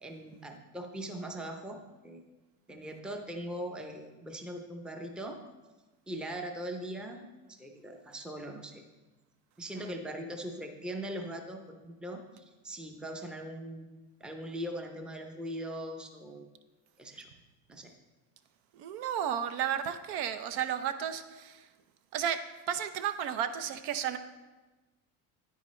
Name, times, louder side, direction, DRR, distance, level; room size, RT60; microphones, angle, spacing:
voice 1, 0.0-2.2 2.7-5.4 6.1-7.2 7.5-8.8 9.6-13.9 14.2-16.5 17.0-17.3 17.7-17.9, right 1 dB, ahead, 4 dB, 0.5 m, -40 dB
voice 2, 18.7-21.6 22.1-22.4 22.7-24.2, right 9 dB, 70° right, 10 dB, 0.7 m, -33 dB
9.5 x 9.2 x 3.2 m, 1.2 s
cardioid pair, 135°, 42 cm